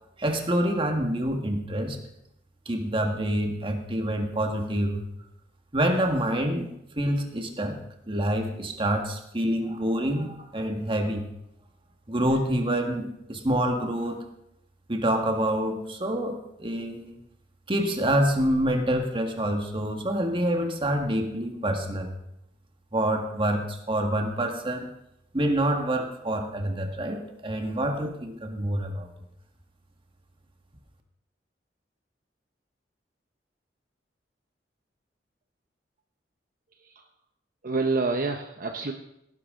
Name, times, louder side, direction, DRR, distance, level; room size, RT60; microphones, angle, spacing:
voice 1, 0.2-2.0 2.6-5.0 5.7-6.7 7.0-7.8 8.1-11.3 12.1-14.2 14.9-17.2 17.7-22.1 22.9-24.9 25.3-29.1, right 1 dB, 30° right, 4 dB, 1.6 m, -27 dB
voice 2, 37.6-38.9, right 3 dB, 50° right, 4 dB, 0.8 m, -28 dB
17.5 x 10.5 x 3.8 m, 0.81 s
head